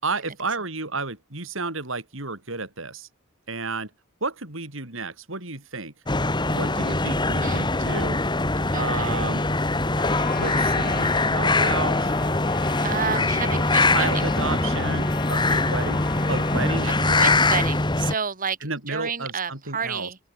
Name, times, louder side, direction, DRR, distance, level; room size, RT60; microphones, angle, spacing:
voice 1, 0.0-3.1 3.5-3.9 4.2-5.9 6.5-8.2 8.8-9.5 10.4-12.1 13.0-13.6 13.9-17.4 18.6-20.1, right 3 dB, 65° right, 4.7 m, -32 dB
sound 1, 6.1-18.1, left 2 dB, 20° left, 2.0 m, -23 dB
voice 2, 7.4-7.9 8.7-9.4 12.8-14.3 17.0-20.2, right 6 dB, 40° right, 2.1 m, -31 dB
Trumpet, 9.9-17.3, left 6 dB, 45° left, 5.0 m, -39 dB
open air
head